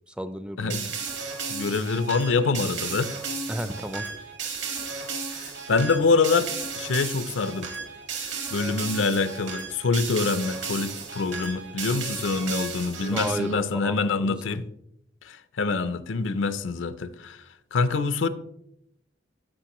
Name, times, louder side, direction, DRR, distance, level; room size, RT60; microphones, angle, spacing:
voice 1, 0.1-0.7 3.5-4.1 13.1-14.6, equal, 5° right, 0.3 m, -33 dB
voice 2, 0.6-0.9 1.5-3.2 5.3-6.5 6.8-7.7 8.5-14.6 15.2-17.4 17.7-18.3, left 4 dB, 80° left, 0.5 m, -25 dB
sound 1, 0.7-13.6, right 5 dB, 70° right, 1.7 m, -34 dB
14.0 x 5.1 x 3.0 m
head